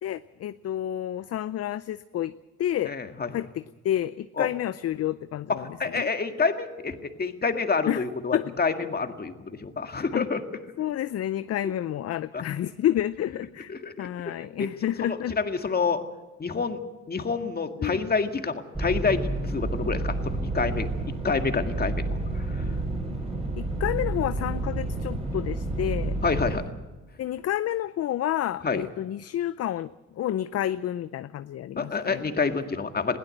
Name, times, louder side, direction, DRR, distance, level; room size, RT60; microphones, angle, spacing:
voice 1, 0.0-2.3 2.6-2.9 3.3-6.1 7.9-8.0 8.3-8.5 10.1-10.2 10.8-13.7 14.0-15.4 17.8-18.1 23.6-26.2 27.2-32.3, left 12 dB, 55° left, 14 dB, 0.6 m, -30 dB
voice 2, 2.9-3.3 4.4-4.5 5.5-10.4 12.3-12.4 13.7-14.7 15.0-16.0 16.4-16.8 17.1-20.9 21.2-22.7 26.2-26.7 28.6-28.8 31.8-33.2, left 4 dB, 30° left, 6 dB, 1.9 m, -28 dB
sound 1, 18.7-26.5, right 2 dB, 20° right, 5.7 m, -30 dB
21.5 x 16.5 x 7.9 m, 1.2 s
cardioid pair, 90°, 30 cm